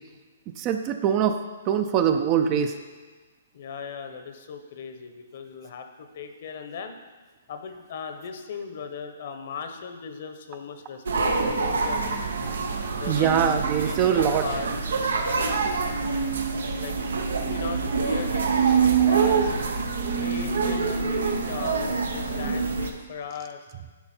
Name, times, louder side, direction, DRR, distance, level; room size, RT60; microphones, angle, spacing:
voice 1, 0.6-1.3 1.7-2.7 13.1-14.5 19.0-19.1, right 8 dB, 30° right, 7 dB, 0.5 m, -23 dB
voice 2, 3.5-6.9 7.5-11.2 11.5-12.2 12.9-13.5 13.8-14.7 15.1-15.7 16.8-17.0 17.5-19.5 20.1-23.6, left 5 dB, 55° left, 7 dB, 0.9 m, -37 dB
sound 1, 11.1-22.9, right 5 dB, 80° right, 0.9 m, -25 dB
10.5 x 4.4 x 4.4 m, 1.4 s
hypercardioid pair, 150°, 0 cm